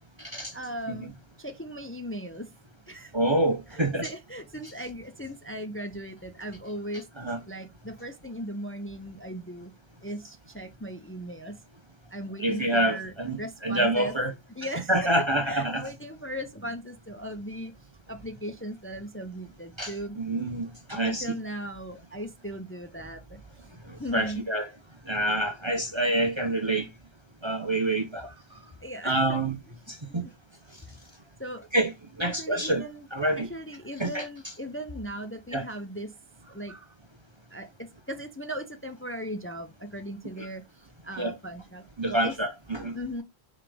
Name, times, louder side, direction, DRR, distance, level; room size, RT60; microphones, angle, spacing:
voice 1, 0.5-1.1 1.4-2.5 2.9-3.1 3.7-7.1 7.5-9.7 10.0-11.6 12.1-14.1 14.5-15.1 15.5-17.7 18.1-20.2 20.9-23.4 24.0-24.5 28.2-29.4 30.2-30.3 31.4-31.7 32.2-33.1 33.4-36.1 36.4-36.9 37.5-37.7 38.1-40.6 41.0-41.8 42.1-42.3 42.9-43.2, equal, 15° left, 0.7 m, -38 dB
voice 2, 3.1-4.1 7.2-7.4 12.4-13.4 13.6-14.3 14.9-15.8 19.8-21.3 24.1-24.7 25.1-26.9 27.4-28.3 29.0-29.6 30.1-30.2 31.7-31.9 32.2-32.8 33.1-33.5 34.0-34.3 35.5-35.7 40.4-40.5 41.2-41.3 42.0-43.0, right 1 dB, 30° right, 0.8 m, -26 dB
5.5 x 5.1 x 3.5 m
omnidirectional pair, 1.1 m